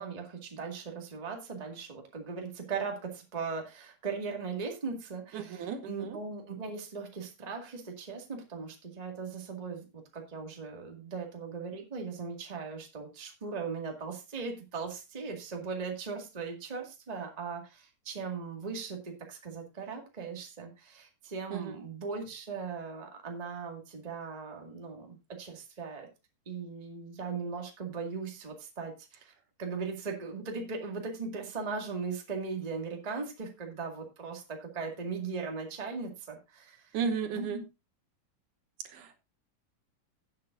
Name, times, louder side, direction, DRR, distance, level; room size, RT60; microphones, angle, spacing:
voice 1, 0.0-26.1 26.4-29.3 29.6-37.0 37.3-37.6, right 5 dB, 15° right, 2 dB, 1.4 m, -39 dB
voice 2, 5.3-6.1 21.5-21.7 36.9-37.6 38.9-39.2, right 6 dB, 75° right, 7 dB, 2.6 m, -34 dB
17.0 x 7.5 x 2.6 m, 0.25 s
omnidirectional pair, 3.8 m